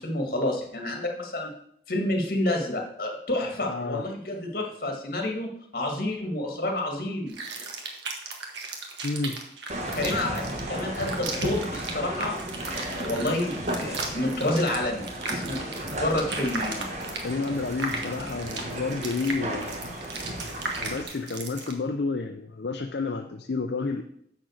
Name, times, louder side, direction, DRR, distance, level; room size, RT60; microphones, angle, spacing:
voice 1, 0.0-1.6 1.9-7.3 10.0-12.4 12.8-15.6 16.0-16.8, left 1 dB, 55° left, 2 dB, 1.9 m, -29 dB
voice 2, 3.6-4.1 4.9-5.0 9.0-9.4 17.2-20.0 20.8-24.0, left 3 dB, 70° left, 5 dB, 0.6 m, -30 dB
sound 1, 7.3-21.7, right 4 dB, 90° right, 1.7 m, -36 dB
sound 2, 9.7-21.0, right 1 dB, 40° right, 1.4 m, -34 dB
7.2 x 6.4 x 6.4 m, 0.70 s
head